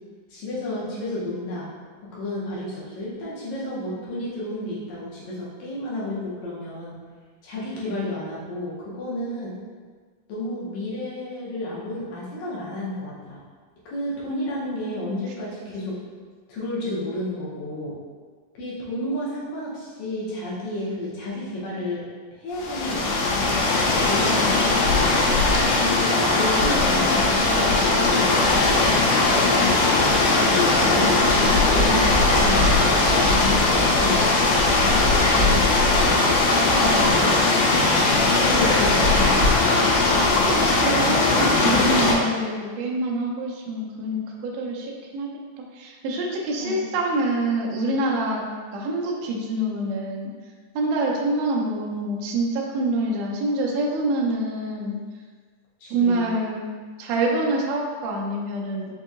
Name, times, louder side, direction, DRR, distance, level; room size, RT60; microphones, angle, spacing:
voice 1, 0.3-1.7 2.1-6.9 7.4-9.6 10.3-13.4 13.9-16.0 16.5-18.0 18.5-22.0 22.4-23.6 24.1-25.2 25.7-28.9 29.3-30.0 30.5-34.3 35.2-35.6 36.0-38.0 38.3-39.4 46.6-46.8 55.8-56.3, left 1 dB, 70° left, -7 dB, 2.0 m, -31 dB
sound 1, 22.6-42.1, left 2 dB, 90° left, 2.2 m, -19 dB
voice 2, 26.1-27.2 40.2-45.3 45.6-48.4 48.7-50.3 50.7-55.0 55.9-56.6 57.0-58.9, right 2 dB, 85° right, -2 dB, 1.5 m, -26 dB
5.2 x 2.7 x 2.4 m, 1.5 s
omnidirectional pair, 3.7 m